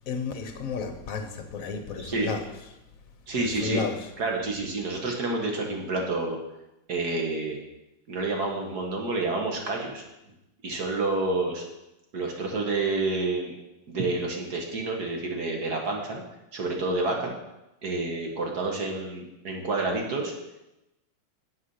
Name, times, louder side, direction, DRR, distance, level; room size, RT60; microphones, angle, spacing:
voice 1, 0.1-2.4 3.4-4.1, left 5 dB, 50° left, 7 dB, 1.2 m, -32 dB
voice 2, 2.0-2.3 3.3-3.8 4.2-6.4 6.9-7.6 8.1-10.0 10.6-11.6 12.1-13.5 13.9-16.2 16.5-17.4 17.8-20.3, right 3 dB, 55° right, 1 dB, 2.1 m, -29 dB
9.6 x 7.6 x 5.6 m, 0.94 s
omnidirectional pair, 2.1 m